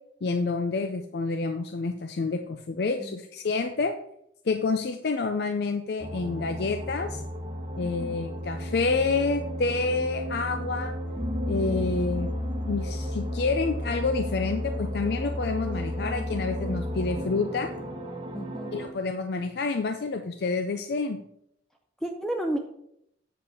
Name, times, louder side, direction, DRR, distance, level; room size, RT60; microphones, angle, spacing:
voice 1, 0.2-3.9 4.4-7.2 7.8-10.9 11.5-12.3 12.7-17.7 18.7-21.2, left 3 dB, 55° left, 7 dB, 0.5 m, -28 dB
sound 1, 6.0-18.9, equal, 25° right, 1.0 m, -33 dB
voice 2, 7.8-8.2 18.3-18.7 22.0-22.6, right 1 dB, 5° left, 3 dB, 0.5 m, -32 dB
8.2 x 5.1 x 4.8 m, 0.74 s
head